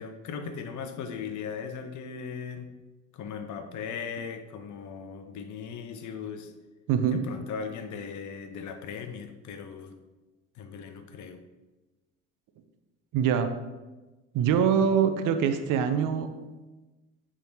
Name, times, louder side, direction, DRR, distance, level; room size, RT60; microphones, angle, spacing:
voice 1, 0.0-2.7 3.1-6.5 7.1-10.0 10.5-11.4, left 6 dB, 55° left, 8 dB, 0.9 m, -38 dB
voice 2, 6.9-7.2 13.1-13.5 14.3-16.3, right 7 dB, 60° right, 8 dB, 0.9 m, -24 dB
8.3 x 3.8 x 4.6 m, 1.1 s
hypercardioid pair, 65°, 35 cm